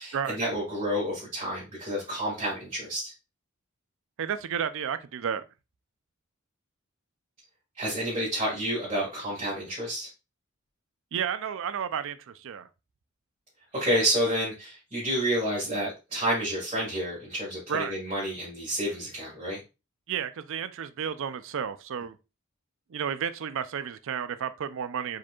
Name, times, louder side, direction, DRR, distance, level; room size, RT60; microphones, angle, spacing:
voice 1, 0.0-3.1 7.8-10.1 13.7-19.6, equal, 30° right, 2.1 m, -29 dB
voice 2, 4.2-5.4 11.1-12.7 17.7-18.0 20.1-22.2 22.9-25.2, right 8 dB, 65° right, 0.4 m, -32 dB
4.9 x 4.4 x 2.3 m
head